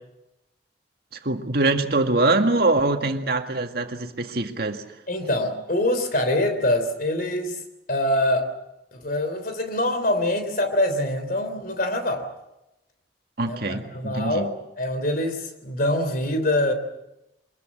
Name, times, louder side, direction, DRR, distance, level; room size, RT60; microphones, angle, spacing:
voice 1, 1.1-4.8 13.4-14.5, right 2 dB, 55° right, 1.9 m, -23 dB
voice 2, 5.1-7.6 7.9-8.5 8.9-12.3 13.4-16.7, left 1 dB, 50° left, 3.4 m, -24 dB
25.0 x 21.0 x 7.4 m
head